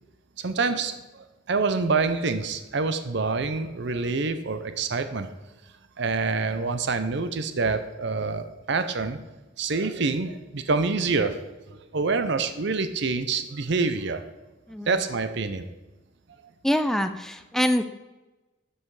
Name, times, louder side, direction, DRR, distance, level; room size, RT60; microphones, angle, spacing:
voice 1, 0.4-5.3 6.0-9.2 9.6-11.4 11.7-14.2 14.9-15.7, right 4 dB, 60° right, 9 dB, 0.7 m, -26 dB
voice 2, 16.6-17.9, equal, ahead, 8 dB, 0.4 m, -25 dB
12.0 x 5.6 x 4.8 m, 1.1 s
head